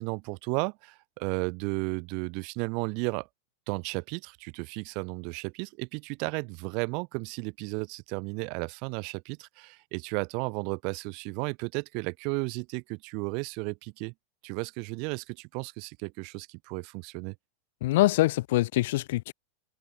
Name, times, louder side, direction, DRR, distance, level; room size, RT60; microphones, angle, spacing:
voice 1, 0.0-3.3 3.7-14.1 14.4-17.3, right 34 dB, 50° right, 7.9 m, -34 dB
voice 2, 17.8-19.3, left 17 dB, 65° left, 2.9 m, -24 dB
hypercardioid pair, 120°, 0 cm